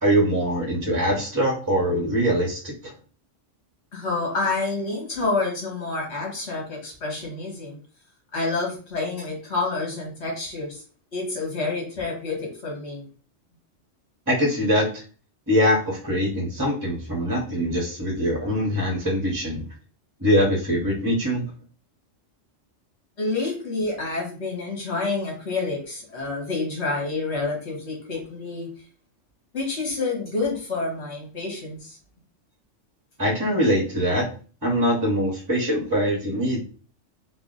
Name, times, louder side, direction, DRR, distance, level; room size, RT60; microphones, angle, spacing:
voice 1, 0.0-2.9 14.3-15.0 15.5-19.6 20.2-21.4 33.2-34.3 34.6-36.6, equal, 20° right, -1 dB, 0.7 m, -23 dB
voice 2, 3.9-7.8 8.3-10.8 11.1-13.1 23.2-28.7 29.5-32.0, left 3 dB, 60° left, -1 dB, 1.5 m, -28 dB
3.3 x 2.1 x 3.8 m, 0.39 s
omnidirectional pair, 1.3 m